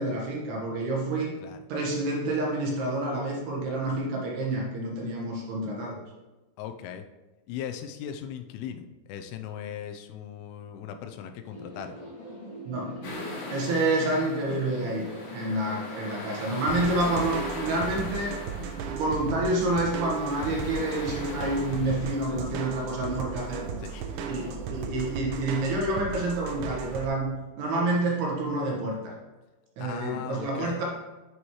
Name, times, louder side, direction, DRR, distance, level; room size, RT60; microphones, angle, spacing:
voice 1, 0.0-1.4 1.7-6.0 12.7-13.0 13.5-18.4 18.7-23.7 24.2-29.1 29.8-30.8, right 2 dB, 65° right, -2 dB, 2.9 m, -28 dB
voice 2, 6.6-7.0 7.5-8.8 9.1-11.9 17.0-17.5 23.8-24.1 29.8-30.8, left 9 dB, 90° left, 6 dB, 3.2 m, -38 dB
sound 1, 11.5-25.1, equal, 50° left, 1.5 m, -43 dB
sound 2, 13.0-22.2, left 2 dB, 70° left, 1.5 m, -40 dB
sound 3, 16.7-27.1, right 7 dB, 85° right, 2.3 m, -36 dB
9.8 x 6.3 x 3.0 m, 1.1 s
omnidirectional pair, 5.6 m